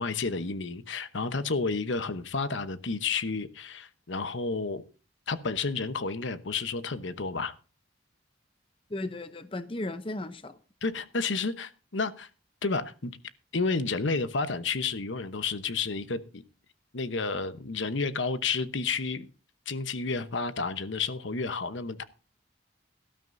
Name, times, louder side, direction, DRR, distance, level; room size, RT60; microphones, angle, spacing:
voice 1, 0.0-4.8 5.3-7.5 10.8-12.3 12.6-13.1 13.5-16.4 16.9-19.3 19.7-22.0, left 4 dB, 70° left, 12 dB, 1.0 m, -31 dB
voice 2, 8.9-10.6, left 2 dB, 25° left, 11 dB, 0.7 m, -35 dB
18.0 x 12.5 x 2.6 m, 0.34 s
head